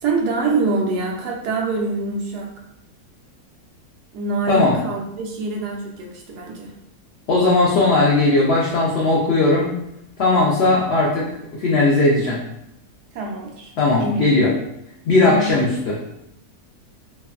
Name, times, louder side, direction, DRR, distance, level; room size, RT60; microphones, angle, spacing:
voice 1, 0.0-2.5 4.1-6.7 13.1-14.3 15.2-15.5, right 3 dB, 85° right, 0 dB, 1.2 m, -25 dB
voice 2, 7.3-9.7 10.2-12.4 13.8-14.5 15.1-16.0, left 2 dB, 85° left, -4 dB, 0.5 m, -18 dB
3.1 x 2.1 x 2.3 m, 0.83 s
omnidirectional pair, 1.7 m